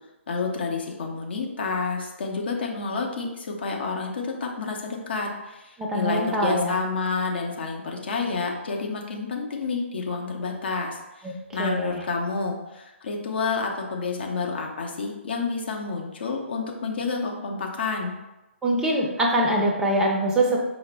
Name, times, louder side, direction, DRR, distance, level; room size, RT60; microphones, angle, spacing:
voice 1, 0.3-18.1, left 4 dB, 50° left, 1 dB, 0.7 m, -29 dB
voice 2, 5.8-6.8 11.2-11.3 11.6-12.0 18.6-20.6, right 1 dB, 5° right, -2 dB, 0.5 m, -23 dB
5.0 x 2.0 x 3.3 m, 1.0 s
figure-of-eight pair, 130°, 7 cm